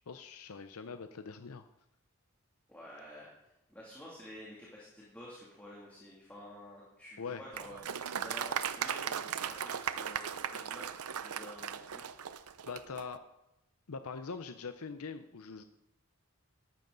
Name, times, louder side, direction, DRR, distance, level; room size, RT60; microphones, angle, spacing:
voice 1, 0.0-1.6 7.2-7.4 12.6-13.2 13.9-15.6, left 5 dB, 85° left, 9 dB, 0.6 m, -42 dB
voice 2, 2.7-3.3 3.7-7.9 8.2-12.1, left 1 dB, 10° left, -6 dB, 2.5 m, -50 dB
Applause, 7.5-13.1, right 8 dB, 90° right, 0.6 m, -37 dB
13.5 x 12.5 x 3.9 m, 0.90 s
head